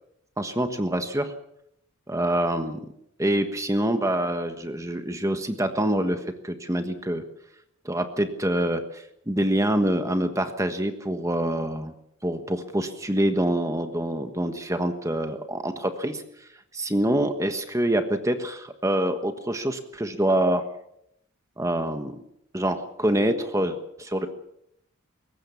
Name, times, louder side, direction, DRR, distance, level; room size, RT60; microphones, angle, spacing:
voice 1, 0.4-1.3 2.1-2.8 3.2-7.2 7.8-11.9 12.2-16.2 16.7-20.7 21.6-22.2 22.5-24.3, right 1 dB, 15° right, 8 dB, 1.3 m, -26 dB
22.5 x 18.5 x 7.1 m, 0.75 s
head